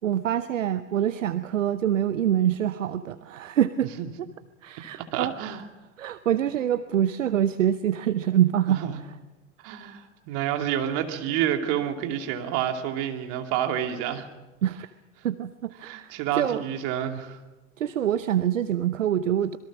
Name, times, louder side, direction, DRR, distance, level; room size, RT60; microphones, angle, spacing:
voice 1, 0.0-3.9 4.6-5.3 6.0-8.8 14.6-14.9 15.2-16.6 17.8-19.6, right 10 dB, 80° right, 13 dB, 0.8 m, -25 dB
voice 2, 5.1-5.6 8.7-9.0 9.6-14.3 15.8-17.4, right 10 dB, 55° right, 5 dB, 2.7 m, -29 dB
26.0 x 21.5 x 6.3 m, 1.1 s
figure-of-eight pair, 75°, 37 cm